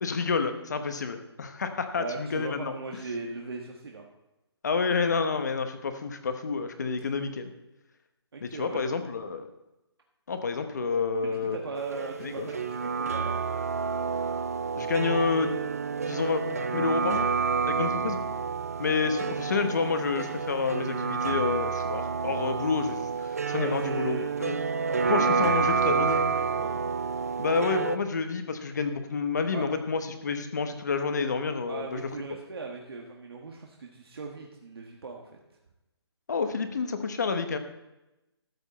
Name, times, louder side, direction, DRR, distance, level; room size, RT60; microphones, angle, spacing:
voice 1, 0.0-2.7 4.6-7.5 8.4-9.5 10.3-11.6 12.2-12.5 14.7-15.5 16.0-16.4 16.7-17.3 17.6-18.2 18.8-24.6 25.1-26.3 27.4-32.0 36.3-37.6, left 5 dB, 40° left, 8 dB, 1.1 m, -29 dB
voice 2, 2.0-4.1 8.3-8.9 11.2-13.4 18.8-19.3 23.5-24.3 24.9-26.7 29.5-29.6 31.7-35.4, right 3 dB, 60° right, 1 dB, 1.4 m, -39 dB
sound 1, 11.8-28.0, right 5 dB, 35° right, 0.4 m, -29 dB
13.5 x 8.1 x 4.1 m, 0.97 s
hypercardioid pair, 180°, 14 cm